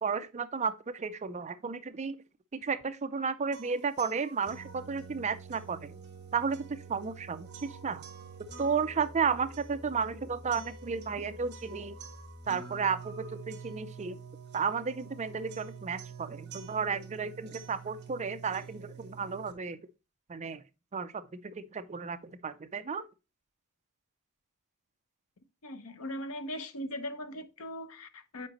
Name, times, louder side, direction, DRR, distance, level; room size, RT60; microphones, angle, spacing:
voice 1, 0.0-2.2 2.5-5.9 6.3-8.0 8.6-12.0 12.5-14.2 14.5-19.8 20.3-20.6 20.9-23.1, right 5 dB, 30° right, 0.5 m, -33 dB
sound 1, 3.5-19.5, right 5 dB, 50° right, 1.2 m, -47 dB
voice 2, 25.6-28.5, left 1 dB, 70° left, 0.8 m, -39 dB
7.6 x 4.9 x 3.0 m
head